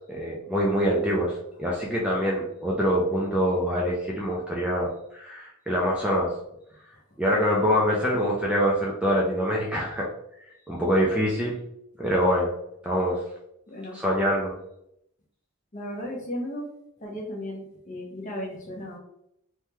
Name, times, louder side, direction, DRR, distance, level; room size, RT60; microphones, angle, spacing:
voice 1, 0.1-6.3 7.2-10.1 10.7-11.6 12.0-12.5 12.8-13.2 13.9-14.5, equal, 5° right, -3 dB, 0.3 m, -25 dB
voice 2, 7.9-8.2 13.7-14.0 15.7-16.7 17.0-19.0, left 1 dB, 35° left, -1 dB, 0.7 m, -36 dB
3.4 x 2.2 x 2.9 m, 0.78 s
head